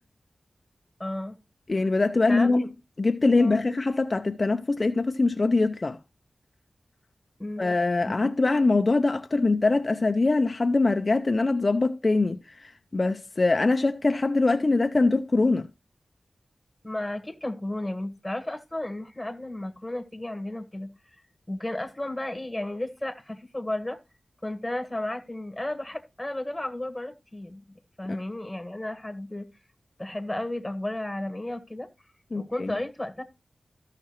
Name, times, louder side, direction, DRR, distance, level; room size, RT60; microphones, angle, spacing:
voice 1, 1.0-1.4 1.8-1.9 2.3-2.6 3.4-3.6 7.4-7.8 8.0-8.2 16.8-20.9 21.5-24.0 24.4-29.5 30.0-31.9 32.3-33.2, left 1 dB, 15° left, 1.5 m, -33 dB
voice 2, 1.7-2.7 3.0-6.0 7.6-15.7 28.1-28.2 32.3-32.8, left 3 dB, 45° left, 0.5 m, -23 dB
14.0 x 5.7 x 2.9 m
wide cardioid pair, 65°, 0 cm